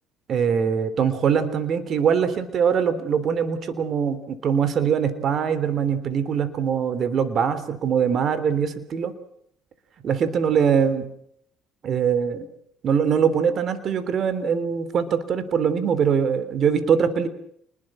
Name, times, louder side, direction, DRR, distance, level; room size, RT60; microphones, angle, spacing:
voice 1, 0.3-9.1 10.0-11.1 11.8-12.5 12.8-17.3, right 7 dB, 50° right, 13 dB, 3.4 m, -22 dB
28.5 x 21.0 x 6.3 m, 0.70 s
supercardioid pair, 90°, 0 cm